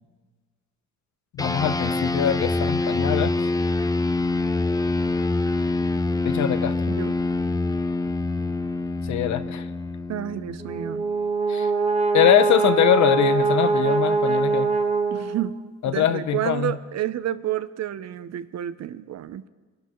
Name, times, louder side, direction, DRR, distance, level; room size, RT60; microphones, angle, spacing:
voice 1, 1.3-3.5 6.2-6.7 9.0-9.7 11.5-11.7 12.1-14.7 15.8-16.8, left 10 dB, 70° left, 11 dB, 0.9 m, -22 dB
sound 1, 1.4-11.1, left 2 dB, 10° left, 0.6 m, -25 dB
voice 2, 10.1-11.1 15.1-19.5, right 11 dB, 60° right, 13 dB, 0.7 m, -30 dB
Brass instrument, 10.6-15.7, right 4 dB, 20° right, 1.5 m, -23 dB
24.5 x 11.5 x 3.1 m, 1.4 s
cardioid pair, 90°, 30 cm